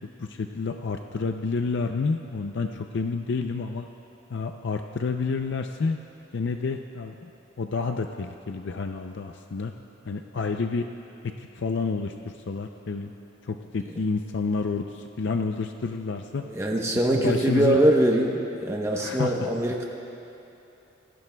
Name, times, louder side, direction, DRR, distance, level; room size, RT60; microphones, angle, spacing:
voice 1, 0.2-3.9 4.3-6.0 6.3-7.3 7.6-9.7 10.1-10.8 11.5-13.1 13.4-16.4 16.9-17.8 19.0-19.3, left 4 dB, 60° left, 5 dB, 0.5 m, -29 dB
voice 2, 16.4-19.9, right 1 dB, 15° right, 0 dB, 0.9 m, -23 dB
25.5 x 17.5 x 2.3 m, 2.9 s
head